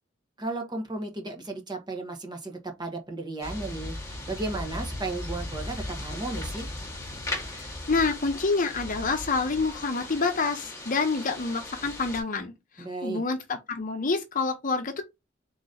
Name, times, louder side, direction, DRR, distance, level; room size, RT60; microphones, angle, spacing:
voice 1, 0.4-6.7 12.8-13.2, right 2 dB, 20° right, 1.2 m, -34 dB
sound 1, 3.4-12.2, left 1 dB, 15° left, 1.5 m, -37 dB
voice 2, 7.5-12.5 13.0-15.0, left 4 dB, 45° left, 0.7 m, -27 dB
3.9 x 3.0 x 3.8 m
head